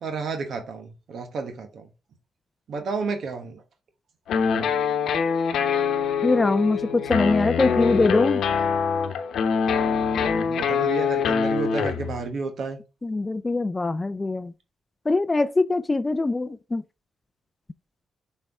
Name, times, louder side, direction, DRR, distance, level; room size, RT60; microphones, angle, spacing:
voice 1, 0.0-1.9 2.7-3.6 10.3-12.8, right 4 dB, 70° right, 1.2 m, -31 dB
sound 1, 4.3-12.3, left 6 dB, 80° left, 0.9 m, -24 dB
voice 2, 6.2-8.4 13.0-14.5 15.1-16.8, left 3 dB, 25° left, 0.4 m, -23 dB
7.4 x 4.5 x 3.5 m
cardioid pair, 80°, 0 cm